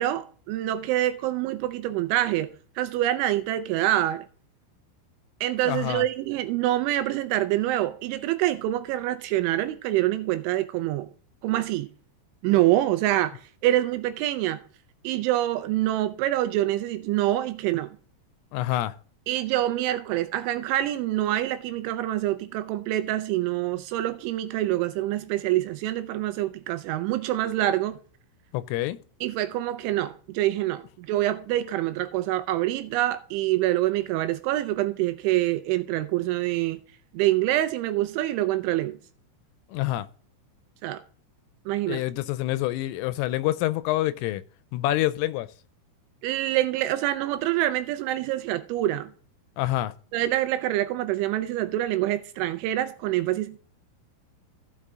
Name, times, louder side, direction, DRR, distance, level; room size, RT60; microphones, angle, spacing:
voice 1, 0.0-4.2 5.4-11.1 11.4-11.9 12.4-14.6 15.0-17.9 19.3-28.0 29.2-36.8 37.1-39.0 40.8-41.0 41.7-42.0 46.2-49.1 50.1-53.6, right 14 dB, 80° right, 2.8 m, -26 dB
voice 2, 5.7-6.1 18.5-18.9 28.5-29.0 39.7-40.1 41.9-44.4 44.7-45.5 49.6-49.9, left 15 dB, 85° left, 3.1 m, -27 dB
15.5 x 5.6 x 3.7 m
omnidirectional pair, 5.8 m